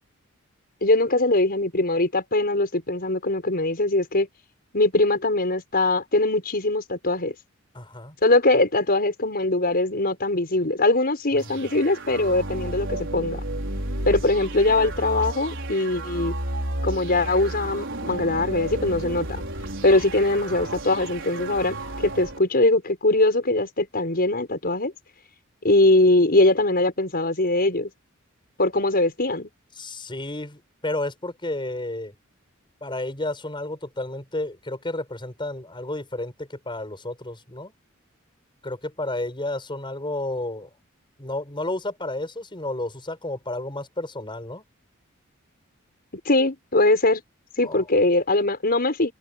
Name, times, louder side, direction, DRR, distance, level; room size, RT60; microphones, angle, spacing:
voice 1, 0.8-4.3 4.7-7.3 8.2-13.4 14.0-16.3 16.8-19.4 19.8-21.8 22.0-24.9 25.6-27.9 28.6-29.5 46.3-47.2 47.6-49.1, left 2 dB, 45° left, 5.7 m, -21 dB
voice 2, 7.7-8.2 11.3-11.5 29.8-32.1 32.8-37.7 38.6-40.7 41.2-44.6 47.6-47.8, left 2 dB, 25° left, 5.8 m, -31 dB
sound 1, 11.4-22.4, right 1 dB, 65° right, 5.0 m, -32 dB
head